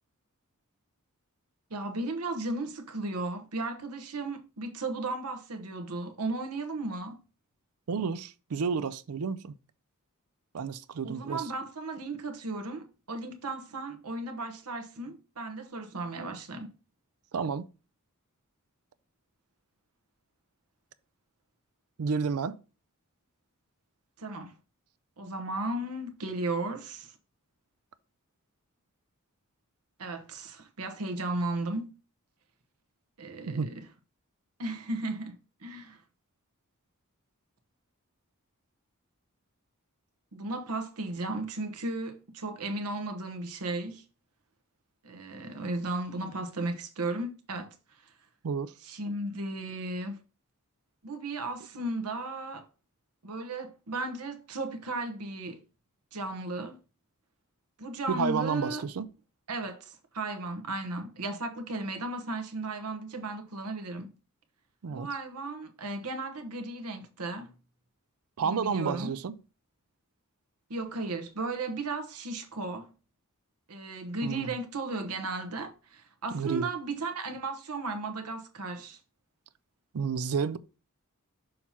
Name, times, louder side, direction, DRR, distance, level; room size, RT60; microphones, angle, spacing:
voice 1, 1.7-7.2 11.0-16.7 24.2-24.5 25.2-27.1 30.0-31.9 33.2-33.9 34.6-36.0 40.3-44.0 45.0-47.7 48.8-50.2 51.0-52.7 53.2-55.6 56.1-56.8 57.8-58.8 59.5-64.1 64.9-67.5 68.4-69.1 70.7-72.9 73.7-79.0, right 2 dB, 90° right, 1.1 m, -35 dB
voice 2, 7.9-9.6 10.5-11.5 17.3-17.7 22.0-22.6 33.5-33.7 48.4-48.7 58.1-59.1 64.8-65.1 68.4-69.4 74.2-74.6 76.3-76.7 79.9-80.6, right 5 dB, 75° right, 0.4 m, -31 dB
6.5 x 2.9 x 5.5 m
head